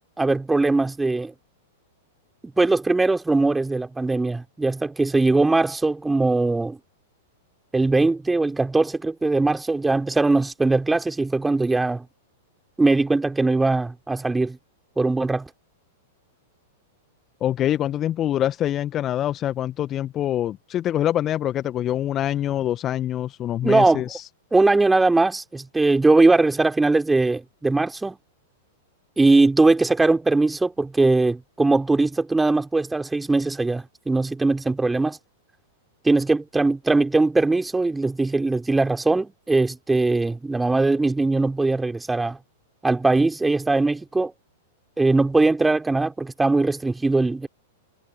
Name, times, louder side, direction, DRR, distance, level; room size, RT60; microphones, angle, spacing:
voice 1, 0.2-1.3 2.6-6.8 7.7-12.1 12.8-14.6 15.0-15.5 23.6-24.0 24.5-28.2 29.2-35.2 36.0-42.4 42.8-44.3 45.0-47.5, right 3 dB, 10° right, 4.0 m, -20 dB
voice 2, 17.4-24.2, left 11 dB, 30° left, 1.3 m, -25 dB
figure-of-eight pair, 100°, 0 cm